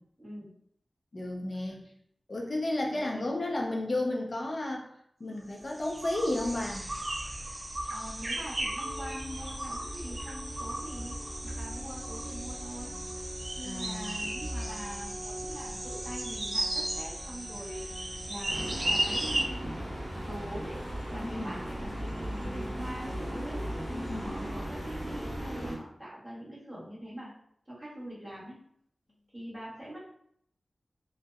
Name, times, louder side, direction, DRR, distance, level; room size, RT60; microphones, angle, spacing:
voice 1, 0.2-0.5 2.9-3.3 7.9-11.2 11.4-13.0 13.6-19.7 20.2-20.8 21.1-23.6 24.2-27.3 27.7-28.6 29.3-30.0, equal, 5° right, -8 dB, 1.2 m, -43 dB
voice 2, 1.1-1.8 2.3-4.9 5.2-6.9 13.6-14.2 21.2-21.6 23.9-24.4, left 1 dB, 50° left, -1 dB, 0.5 m, -33 dB
sound 1, 5.6-19.4, right 1 dB, 40° right, 0.4 m, -35 dB
sound 2, 8.8-23.9, equal, 65° right, 0.9 m, -45 dB
sound 3, 18.5-25.7, equal, 25° right, 1.2 m, -37 dB
2.6 x 2.0 x 2.3 m, 0.69 s
wide cardioid pair, 70°, 0 cm